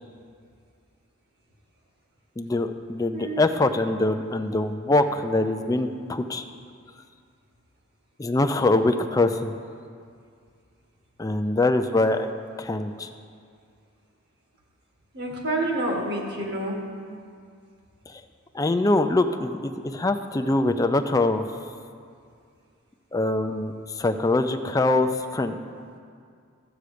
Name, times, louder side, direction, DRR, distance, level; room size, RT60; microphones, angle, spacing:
voice 1, 2.4-6.4 8.2-9.5 11.2-12.3 12.6-13.1 18.1-18.2 18.5-21.4 23.1-25.6, left 2 dB, 15° left, 7 dB, 0.4 m, -23 dB
voice 2, 3.1-3.5 15.1-16.8, right 1 dB, 50° right, 0 dB, 1.8 m, -28 dB
13.0 x 8.0 x 5.0 m, 2.2 s
head